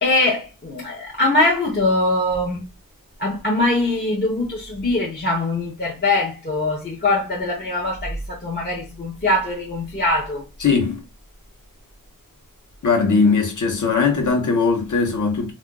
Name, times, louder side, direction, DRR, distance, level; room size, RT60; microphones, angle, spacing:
voice 1, 0.0-2.6 3.2-10.4, left 2 dB, 30° left, 0.7 m, -22 dB
voice 2, 10.6-11.0 12.8-15.5, left 4 dB, 60° left, 0.9 m, -19 dB
2.5 x 2.2 x 3.7 m
wide cardioid pair, 120°, 35 cm